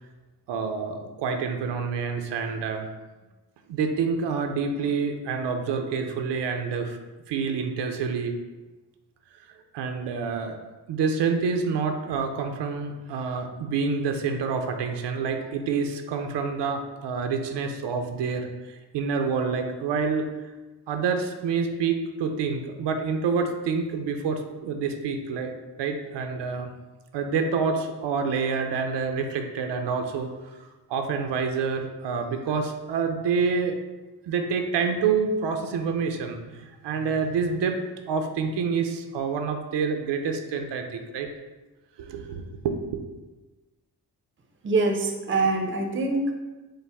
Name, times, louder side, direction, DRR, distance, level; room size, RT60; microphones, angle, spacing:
voice 1, 0.5-2.9 3.7-7.0 7.3-8.3 9.7-10.6 10.9-20.2 20.9-25.5 25.8-26.7 27.1-30.3 30.9-33.8 34.3-37.8 38.1-41.3 42.0-43.0, right 5 dB, 90° right, 5 dB, 0.5 m, -27 dB
voice 2, 44.6-46.3, right 3 dB, 30° right, 3 dB, 0.5 m, -24 dB
5.4 x 2.0 x 3.4 m, 1.2 s
cardioid pair, 95°, 41 cm